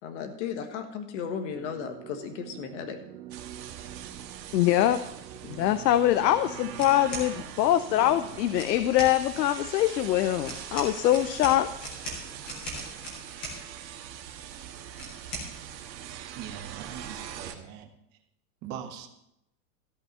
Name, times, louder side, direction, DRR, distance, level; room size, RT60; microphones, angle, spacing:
voice 1, 0.0-3.0, left 7 dB, 45° left, 6 dB, 1.5 m, -35 dB
sound 1, 1.5-8.4, right 12 dB, 70° right, 1.0 m, -46 dB
sound 2, 3.3-17.6, right 10 dB, 85° right, 1.5 m, -43 dB
voice 2, 4.5-5.0 5.4-11.7, left 13 dB, 80° left, 12 dB, 0.7 m, -23 dB
sound 3, 6.7-7.3 8.5-9.1 10.4-13.6 14.9-15.5, right 1 dB, 10° left, 0.4 m, -38 dB
voice 3, 16.4-17.9 18.6-19.1, right 9 dB, 20° right, 6 dB, 0.7 m, -41 dB
13.5 x 5.5 x 7.2 m, 0.83 s
supercardioid pair, 170°, 50 cm